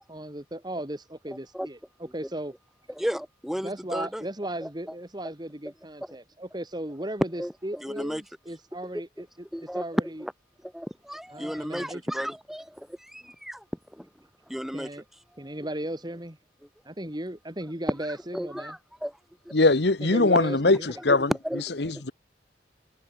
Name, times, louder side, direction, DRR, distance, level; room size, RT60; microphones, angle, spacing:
voice 1, 0.0-1.8 2.1-2.5 3.6-9.3 9.7-10.2 11.3-12.0 14.7-15.0 15.4-16.4 16.9-18.8 20.0-20.9, right 1 dB, 25° right, 2.5 m, -36 dB
voice 2, 1.3-1.7 2.9-4.2 4.6-4.7 6.1-6.2 7.4-8.2 9.5-10.3 10.6-13.6 13.9-14.1 14.5-14.9 15.4-15.5 18.3-19.2 19.4-19.5 21.1-21.2 21.4-21.6, equal, ahead, 1.3 m, -34 dB
voice 3, 19.5-22.1, left 2 dB, 70° left, 1.3 m, -22 dB
head